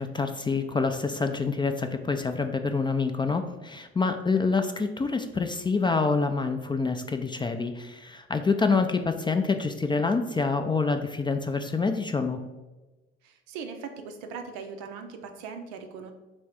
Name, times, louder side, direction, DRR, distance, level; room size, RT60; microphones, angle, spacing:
voice 1, 0.0-12.4, left 4 dB, 15° left, 7 dB, 0.3 m, -27 dB
voice 2, 13.2-16.1, right 5 dB, 75° right, 6 dB, 0.6 m, -39 dB
3.4 x 3.1 x 4.8 m, 1.1 s
figure-of-eight pair, 45°, 31 cm